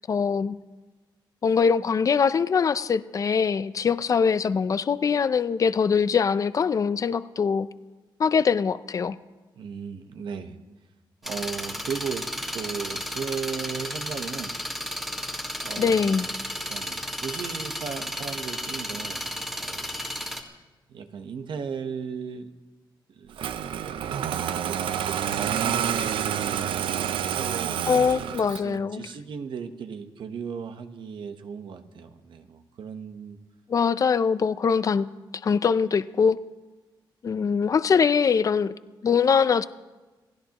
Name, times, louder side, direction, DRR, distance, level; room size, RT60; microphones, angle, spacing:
voice 1, 0.1-0.6 1.4-7.7 8.2-9.2 15.8-16.3 27.9-29.1 33.7-35.1 35.4-36.4 37.2-38.7 39.0-39.7, left 6 dB, 40° left, 14 dB, 0.5 m, -22 dB
voice 2, 9.6-10.6 11.2-14.6 15.6-16.3 16.7-20.0 20.5-20.6 20.9-22.5 23.1-23.4 23.8-28.1 28.6-33.4, right 6 dB, 70° right, 8 dB, 1.1 m, -37 dB
sound 1, 11.2-20.4, equal, 5° right, 1.8 m, -33 dB
Engine starting, 23.4-28.7, right 9 dB, 90° right, 0.6 m, -28 dB
28.0 x 16.0 x 3.0 m, 1.2 s
cardioid pair, 115°, 9 cm